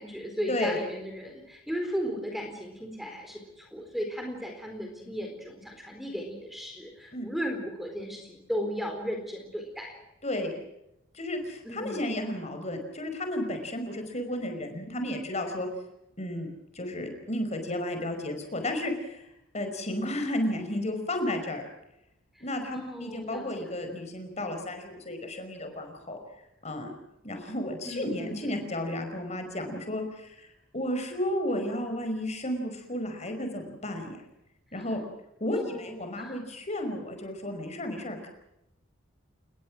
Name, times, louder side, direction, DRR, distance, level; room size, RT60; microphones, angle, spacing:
voice 1, 0.0-10.0 11.6-12.0 22.7-23.7 27.9-28.7 35.5-36.4, equal, ahead, 3 dB, 4.2 m, -35 dB
voice 2, 10.2-10.5 11.1-15.7 16.2-16.5 16.7-19.2 19.5-21.6 22.4-26.2 26.6-26.9 27.2-30.5 30.7-34.2 34.7-35.0 35.4-38.3, left 1 dB, 35° left, 6 dB, 5.3 m, -33 dB
29.0 x 21.5 x 6.3 m, 0.85 s
head